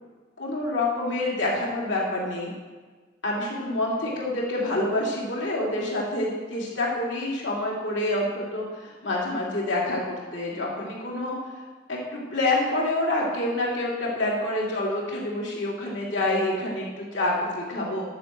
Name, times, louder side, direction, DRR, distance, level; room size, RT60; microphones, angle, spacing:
voice 1, 0.4-2.5 3.2-11.4 11.9-18.0, left 1 dB, 90° left, -4 dB, 2.7 m, -27 dB
11.5 x 5.6 x 7.4 m, 1.3 s
head